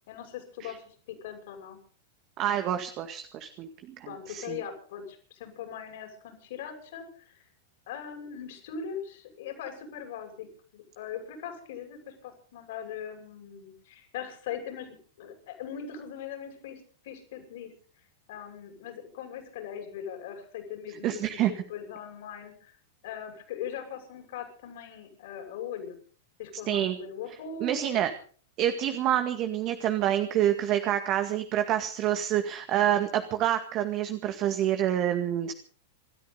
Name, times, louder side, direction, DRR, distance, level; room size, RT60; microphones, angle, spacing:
voice 1, 0.1-1.8 4.1-7.4 7.9-10.5 10.7-17.7 18.3-22.7 23.0-26.0 26.4-28.0, left 8 dB, 60° left, 5 dB, 6.6 m, -40 dB
voice 2, 2.4-4.6 21.0-21.5 26.7-27.0 27.6-28.1 28.6-35.5, right 11 dB, 40° right, 7 dB, 2.0 m, -27 dB
27.0 x 13.5 x 4.0 m, 0.44 s
hypercardioid pair, 100°, 0 cm